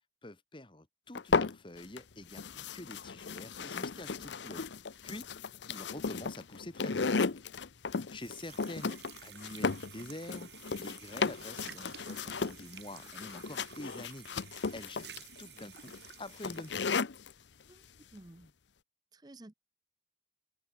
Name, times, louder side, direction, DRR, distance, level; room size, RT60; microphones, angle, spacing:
voice 1, 0.2-4.7 5.0-5.3 5.7-7.0 8.1-15.1 15.4-16.9, left 1 dB, 30° left, 1.5 m, -47 dB
sound 1, 1.1-2.0 2.3-17.3, left 4 dB, 80° left, 0.8 m, -35 dB
sound 2, 8.2-16.9, right 10 dB, 70° right, 6.3 m, -53 dB
voice 2, 18.1-18.5 19.1-19.5, right 1 dB, 20° right, 0.6 m, -52 dB
open air
head